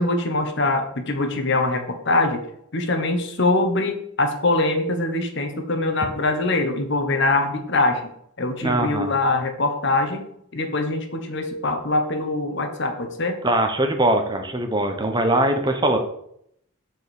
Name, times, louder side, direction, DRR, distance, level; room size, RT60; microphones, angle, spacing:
voice 1, 0.0-2.4 2.7-8.0 8.4-10.2 10.5-13.4, left 2 dB, 55° left, 6 dB, 1.2 m, -23 dB
voice 2, 8.6-9.2 13.4-16.0, right 1 dB, 20° right, 5 dB, 1.0 m, -21 dB
7.9 x 4.7 x 7.0 m, 0.73 s
head